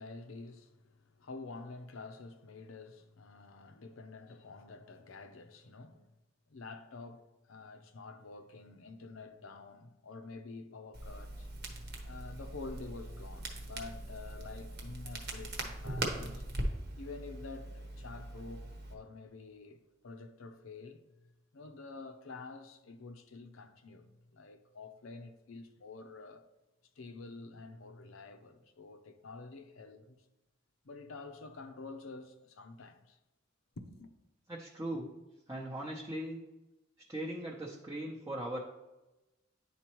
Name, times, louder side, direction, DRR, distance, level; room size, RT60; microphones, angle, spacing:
voice 1, 0.0-6.1 6.5-11.5 12.0-16.5 17.0-26.5 27.0-30.3 30.8-33.2 33.8-34.1, left 3 dB, 75° left, 0.7 m, -48 dB
Crackle, 10.9-18.9, right 1 dB, 50° right, 1.1 m, -41 dB
voice 2, 34.5-35.1 35.5-36.4 37.1-38.6, right 1 dB, 15° right, 0.7 m, -39 dB
10.0 x 4.3 x 3.0 m
head